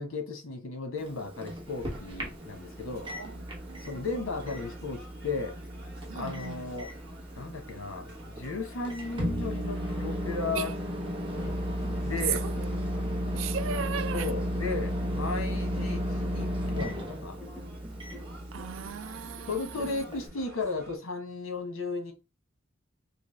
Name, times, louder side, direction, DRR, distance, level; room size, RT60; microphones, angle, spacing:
voice 1, 0.0-3.1 3.8-5.6 6.1-6.9 7.4-10.7 12.0-12.5 14.1-17.3 19.5-22.1, left 3 dB, 85° left, 1.1 m, -35 dB
Microwave oven, 1.0-20.3, equal, 25° right, 1.0 m, -34 dB
sound 1, 1.7-21.0, right 1 dB, 50° right, 1.3 m, -54 dB
voice 2, 3.7-4.0 6.1-6.6 10.6-10.7 12.3-12.7 13.4-14.3 15.8-16.0 18.5-20.0, right 7 dB, 70° right, 0.4 m, -37 dB
sound 2, 11.4-18.6, left 1 dB, 5° left, 0.8 m, -48 dB
3.4 x 2.5 x 3.1 m
head